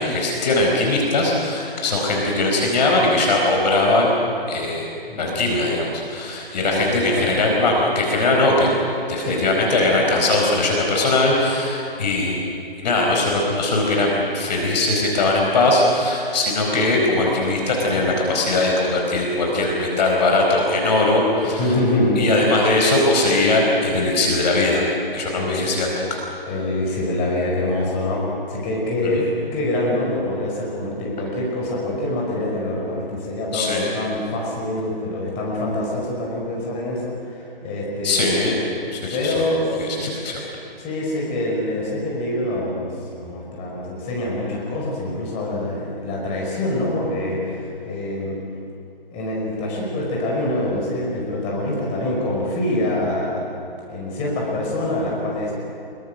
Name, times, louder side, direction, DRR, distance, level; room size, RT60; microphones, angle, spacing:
voice 1, 0.0-4.1 4.5-4.8 5.2-8.7 9.1-12.4 12.8-21.6 22.2-24.8 25.1-26.2 29.0-29.2 33.5-33.9 38.0-38.5 38.9-39.4 39.8-40.4, left 2 dB, 45° left, -1 dB, 4.7 m, -20 dB
voice 2, 5.1-5.6 6.7-7.3 9.2-9.5 21.4-22.2 25.3-25.8 26.5-38.5 39.1-39.8 40.8-48.4 49.1-53.5 53.9-55.5, left 1 dB, 20° left, -3 dB, 5.5 m, -25 dB
25.5 x 23.0 x 6.6 m, 2.6 s
figure-of-eight pair, 150°, 30 cm